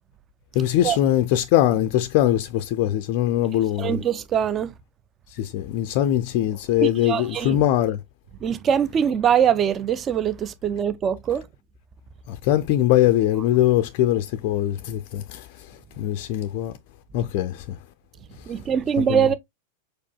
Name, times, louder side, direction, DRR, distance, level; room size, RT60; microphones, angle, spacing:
voice 1, 0.6-4.0 5.3-8.0 12.3-15.5 16.0-16.7 17.1-17.8 19.0-19.3, left 12 dB, 45° left, 0.4 m, -22 dB
voice 2, 3.8-4.7 6.8-7.6 8.4-11.4 18.5-19.3, right 8 dB, 25° right, 0.5 m, -22 dB
4.8 x 4.5 x 2.2 m
figure-of-eight pair, 90°, 0 cm